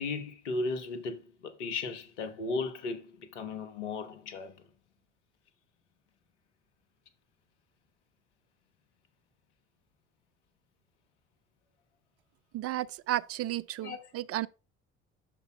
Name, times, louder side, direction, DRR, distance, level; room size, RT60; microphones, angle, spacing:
voice 1, 0.0-4.5 13.8-14.1, left 3 dB, 80° left, 1.1 m, -36 dB
voice 2, 12.5-14.5, right 14 dB, 45° right, 0.4 m, -33 dB
10.5 x 6.8 x 2.2 m
figure-of-eight pair, 55°, 35 cm